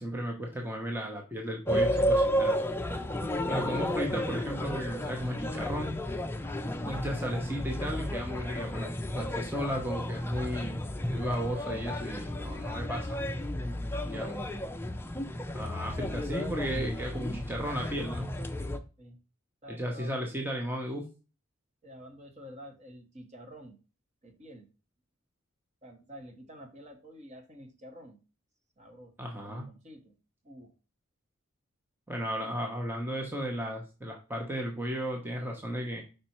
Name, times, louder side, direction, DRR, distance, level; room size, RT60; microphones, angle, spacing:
voice 1, 0.0-2.6 3.5-6.0 6.9-10.8 11.1-13.1 14.0-14.3 15.5-18.3 19.7-21.1 29.2-29.7 32.1-36.0, equal, 10° right, 0 dB, 0.9 m, -34 dB
sound 1, 1.7-18.8, equal, 10° left, 0.5 m, -32 dB
voice 2, 14.0-14.5 19.0-19.2 19.6-20.3 21.8-23.8 24.2-24.7 25.8-28.2 28.8-30.1 30.4-30.7, equal, 35° right, 4 dB, 1.2 m, -49 dB
5.2 x 4.2 x 4.4 m, 0.32 s
head